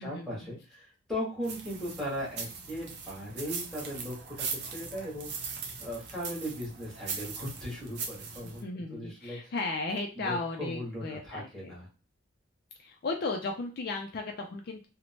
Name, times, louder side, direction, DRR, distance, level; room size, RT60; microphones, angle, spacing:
voice 1, 0.0-5.3 5.8-8.6 8.9-9.5 10.1-11.9, equal, ahead, -5 dB, 1.3 m, -38 dB
sound 1, 1.4-8.6, right 5 dB, 55° right, 0.6 m, -40 dB
voice 2, 8.4-11.7 12.8-14.9, left 3 dB, 50° left, 3 dB, 0.4 m, -35 dB
2.9 x 2.1 x 2.8 m, 0.33 s
head